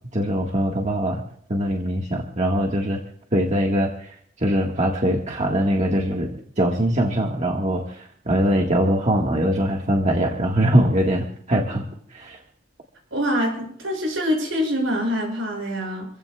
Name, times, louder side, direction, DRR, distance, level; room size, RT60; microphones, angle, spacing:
voice 1, 0.1-1.2 1.5-3.0 3.3-11.8 12.1-12.4, right 1 dB, 35° right, 0 dB, 1.7 m, -22 dB
voice 2, 13.1-16.1, equal, 80° right, -1 dB, 6.7 m, -25 dB
29.0 x 15.5 x 2.4 m, 0.64 s
head